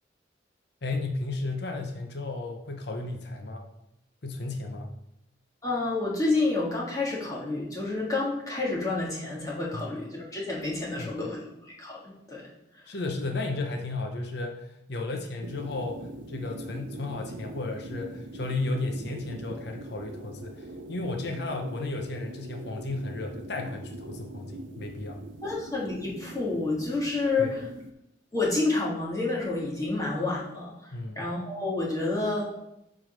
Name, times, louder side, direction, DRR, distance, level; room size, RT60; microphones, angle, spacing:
voice 1, 0.8-3.7 4.2-4.9 9.8-9.9 11.0-11.1 12.9-25.2 27.4-27.5 30.9-31.2, left 2 dB, 60° left, 3 dB, 0.8 m, -34 dB
voice 2, 5.6-12.4 12.9-13.0 25.4-27.6 28.3-32.5, left 3 dB, 20° left, -5 dB, 1.7 m, -29 dB
sound 1, 15.4-27.9, right 1 dB, 80° right, 0.7 m, -42 dB
7.9 x 3.9 x 5.0 m, 0.82 s
head